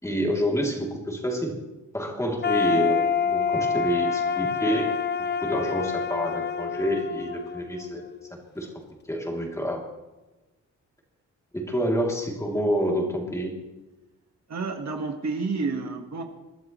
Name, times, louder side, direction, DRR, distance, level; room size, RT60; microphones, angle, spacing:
voice 1, 0.0-1.6 1.9-4.9 5.4-8.0 8.5-8.7 9.1-9.8 11.5-13.6, equal, 10° left, -1 dB, 2.9 m, -28 dB
sound 1, 2.4-8.3, left 6 dB, 35° left, 0.4 m, -27 dB
voice 2, 14.5-16.2, right 4 dB, 60° right, 4 dB, 1.6 m, -30 dB
27.5 x 12.5 x 3.1 m, 1.1 s
wide cardioid pair, 155°, 31 cm